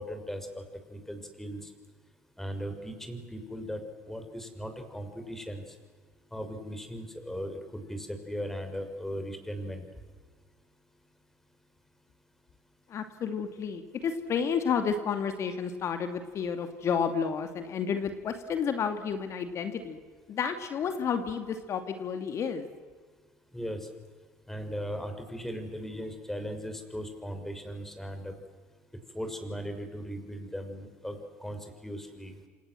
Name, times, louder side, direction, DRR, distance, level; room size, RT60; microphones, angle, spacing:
voice 1, 0.0-1.7 2.4-5.8 6.3-9.9 23.5-23.9 24.5-28.4 29.1-32.4, equal, 5° left, 6 dB, 6.2 m, -38 dB
voice 2, 12.9-20.0 20.3-22.7, left 6 dB, 50° left, 8 dB, 2.4 m, -31 dB
28.0 x 27.5 x 7.8 m, 1.6 s
hypercardioid pair, 65°, 6 cm